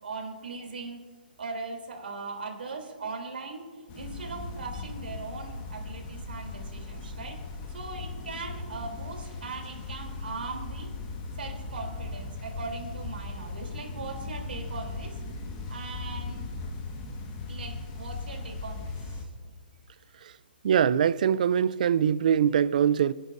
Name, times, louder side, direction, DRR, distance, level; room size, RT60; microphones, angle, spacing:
voice 1, 0.0-1.0 1.4-7.4 7.7-10.9 11.4-15.2 15.7-16.5 17.5-19.5, right 4 dB, 85° right, 3.3 m, -39 dB
sound 1, 3.9-19.2, left 3 dB, 30° left, 1.6 m, -38 dB
voice 2, 20.6-23.1, right 8 dB, 55° right, 0.4 m, -23 dB
24.0 x 10.0 x 2.7 m
hypercardioid pair, 160°, 5 cm